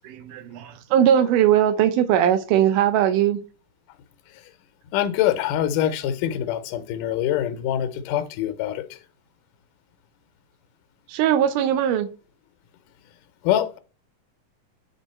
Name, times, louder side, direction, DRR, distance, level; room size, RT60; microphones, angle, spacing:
voice 1, 0.0-3.4 11.1-12.1, right 10 dB, 85° right, 2.3 m, -20 dB
voice 2, 4.9-8.9 13.4-13.8, left 11 dB, 85° left, 2.3 m, -24 dB
9.8 x 3.4 x 4.3 m
omnidirectional pair, 3.7 m